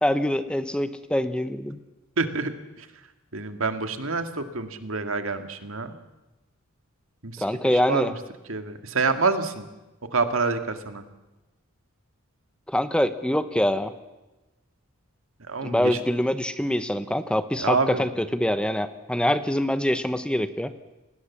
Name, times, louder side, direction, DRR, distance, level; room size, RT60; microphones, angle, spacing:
voice 1, 0.0-1.8 7.4-8.1 12.7-13.9 15.6-20.7, left 1 dB, 5° left, 11 dB, 0.9 m, -24 dB
voice 2, 2.2-2.5 2.8-2.9 3.3-5.9 7.2-8.1 8.5-9.7 10.1-11.0 15.5-16.0 17.6-18.1, right 4 dB, 65° right, 7 dB, 2.1 m, -27 dB
29.0 x 20.0 x 7.3 m, 1.1 s
head